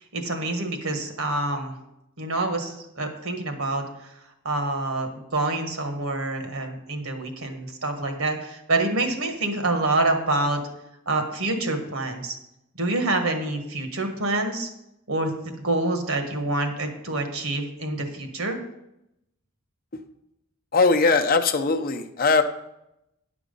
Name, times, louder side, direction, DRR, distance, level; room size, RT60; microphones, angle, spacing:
voice 1, 0.1-1.7 2.2-4.1 4.4-10.6 11.1-12.3 12.8-14.7 15.1-15.3 15.6-18.6, right 2 dB, 75° right, 5 dB, 1.5 m, -27 dB
voice 2, 20.7-22.4, left 4 dB, 40° left, 7 dB, 0.6 m, -20 dB
10.0 x 6.0 x 5.4 m, 0.85 s
head